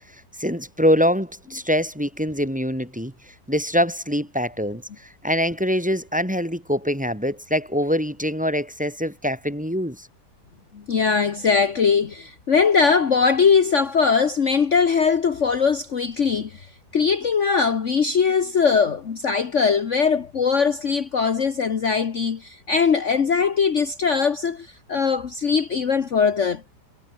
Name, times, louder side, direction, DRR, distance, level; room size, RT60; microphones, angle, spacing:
voice 1, 0.4-3.1 3.5-4.8 5.2-10.1, equal, 5° right, 3.3 m, -24 dB
voice 2, 10.7-16.7 16.9-26.6, left 5 dB, 50° left, 1.5 m, -21 dB
omnidirectional pair, 1.8 m